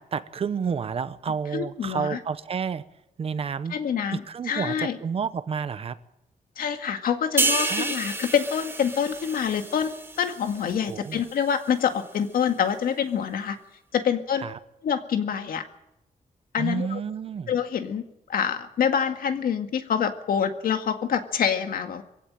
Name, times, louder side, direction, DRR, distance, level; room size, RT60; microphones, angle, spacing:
voice 1, 0.0-2.8 3.2-3.8 4.3-6.0 7.6-7.9 10.9-11.2 14.4-14.6 16.6-17.5, right 6 dB, 40° right, 14 dB, 0.9 m, -30 dB
voice 2, 1.5-2.2 3.7-5.0 6.6-13.6 13.9-14.4 14.8-15.6 16.5-17.0 17.5-18.0 18.3-22.0, left 7 dB, 85° left, 7 dB, 2.0 m, -26 dB
sound 1, 7.4-10.9 11.3-11.5, right 2 dB, 15° right, 1.1 m, -29 dB
22.5 x 16.5 x 8.9 m, 0.86 s
wide cardioid pair, 180°, 15 cm